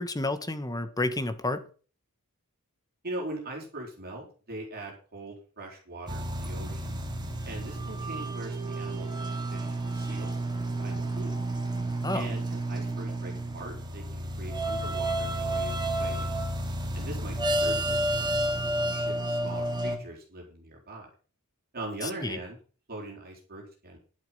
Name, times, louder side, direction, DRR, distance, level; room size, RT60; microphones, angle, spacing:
voice 1, 0.0-1.7 12.0-12.3 22.0-22.4, left 2 dB, 15° left, 1.4 m, -30 dB
voice 2, 3.0-7.0 7.4-10.4 10.8-11.4 12.1-16.3 16.9-21.1 21.7-22.6 22.9-24.0, right 1 dB, 45° right, 4.1 m, -41 dB
sound 1, 6.1-20.0, right 1 dB, 20° right, 2.5 m, -31 dB
11.0 x 8.8 x 5.7 m
head